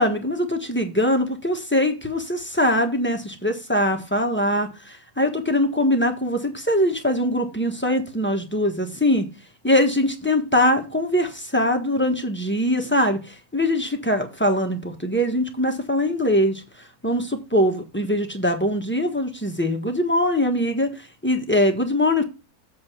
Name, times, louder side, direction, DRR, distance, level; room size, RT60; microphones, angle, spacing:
voice 1, 0.0-9.2 9.6-16.6 17.0-22.2, left 1 dB, 10° left, 1.2 m, -22 dB
7.6 x 4.4 x 6.1 m
omnidirectional pair, 1.7 m